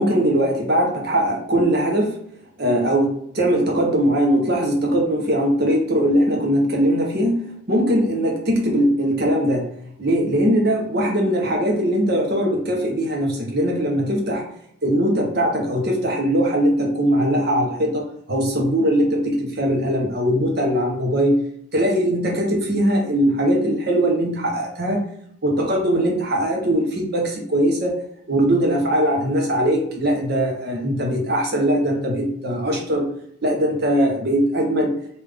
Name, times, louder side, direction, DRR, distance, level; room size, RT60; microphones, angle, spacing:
voice 1, 0.0-2.2 2.6-9.7 10.0-14.4 14.8-21.4 21.7-25.0 25.4-28.0 28.3-33.1 33.4-34.9, equal, 45° right, 0 dB, 0.8 m, -20 dB
3.3 x 2.6 x 3.4 m, 0.68 s
head